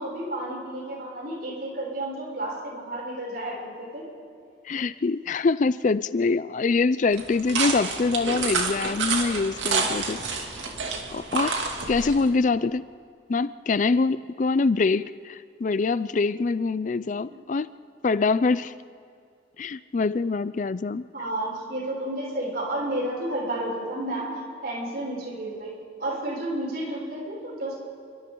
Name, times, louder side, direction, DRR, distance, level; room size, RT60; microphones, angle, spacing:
voice 1, 0.0-4.1 17.3-17.4 21.1-24.3 24.6-27.8, right 1 dB, 55° right, -3 dB, 6.9 m, -31 dB
voice 2, 4.6-10.5 11.1-11.5 11.9-12.9 13.3-17.7 18.0-18.7 19.6-21.0, left 4 dB, 45° left, 15 dB, 0.4 m, -24 dB
sound 1, 7.1-12.3, right 4 dB, 85° right, 2.5 m, -29 dB
29.0 x 24.5 x 3.9 m, 2.4 s
head